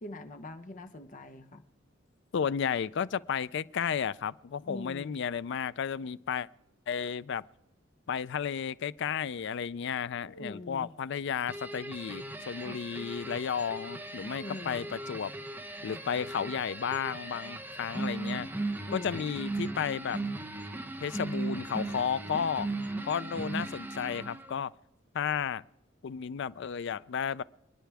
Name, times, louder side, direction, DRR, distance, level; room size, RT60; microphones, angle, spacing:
voice 1, 0.0-1.6 4.6-5.2 10.3-10.9 14.4-14.9 18.9-19.2, left 1 dB, 40° left, 0.9 m, -43 dB
voice 2, 2.3-6.5 6.9-7.4 8.1-15.3 15.8-18.5 18.9-20.2 21.0-22.7 23.1-24.7 25.1-25.6 26.0-27.4, left 7 dB, 65° left, 0.4 m, -33 dB
sound 1, 11.5-24.6, right 2 dB, 10° right, 1.0 m, -38 dB
28.0 x 10.5 x 3.4 m
head